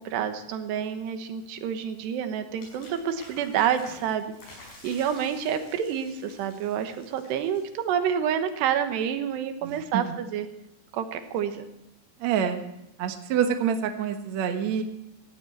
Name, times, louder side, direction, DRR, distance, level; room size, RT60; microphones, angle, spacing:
voice 1, 0.0-4.3 4.8-10.5 10.9-11.7, right 8 dB, 85° right, 8 dB, 3.3 m, -28 dB
sound 1, 2.6-8.1, left 2 dB, 60° left, 7.7 m, -50 dB
voice 2, 9.6-10.1 12.2-12.6 13.0-14.8, right 8 dB, 65° right, 6 dB, 1.9 m, -27 dB
18.0 x 15.0 x 4.5 m, 0.84 s
omnidirectional pair, 4.9 m